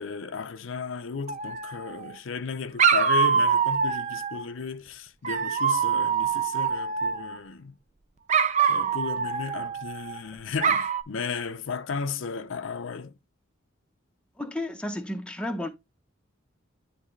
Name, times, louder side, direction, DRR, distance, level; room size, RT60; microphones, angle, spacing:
voice 1, 0.0-7.8 8.7-13.1, left 5 dB, 70° left, 0.6 m, -34 dB
Dog, 1.3-2.1 2.8-4.4 5.2-7.4 8.3-10.2 10.6-11.0, right 6 dB, 35° right, 0.5 m, -25 dB
voice 2, 14.4-15.7, left 1 dB, 5° left, 0.7 m, -32 dB
9.9 x 3.3 x 3.1 m
head